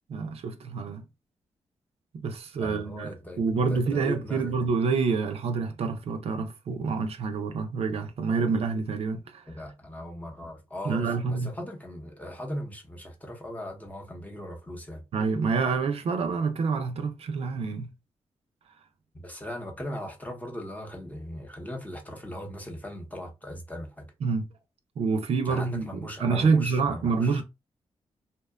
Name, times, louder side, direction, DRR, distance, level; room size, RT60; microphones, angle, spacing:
voice 1, 0.1-1.0 2.1-3.1 3.4-9.4 10.8-11.5 15.1-17.9 24.2-24.5 25.0-27.4, right 4 dB, 65° right, 0.4 m, -27 dB
voice 2, 2.6-3.4 3.7-4.5 9.5-15.0 19.1-24.1 25.5-27.4, equal, 15° left, 0.7 m, -38 dB
2.8 x 2.1 x 2.2 m
cardioid pair, 75°, 11 cm